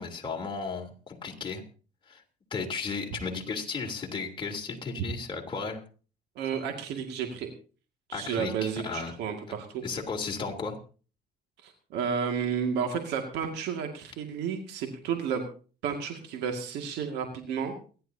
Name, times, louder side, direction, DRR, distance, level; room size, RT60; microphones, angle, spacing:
voice 1, 0.0-1.6 2.1-2.2 2.5-5.8 8.1-9.1 9.8-10.8, left 4 dB, 30° left, 0 dB, 3.4 m, -34 dB
voice 2, 6.4-7.5 8.1-9.8 11.6-15.4 15.8-17.7, right 7 dB, 85° right, 4 dB, 2.2 m, -32 dB
29.0 x 11.0 x 2.8 m, 0.38 s
cardioid pair, 110°, 17 cm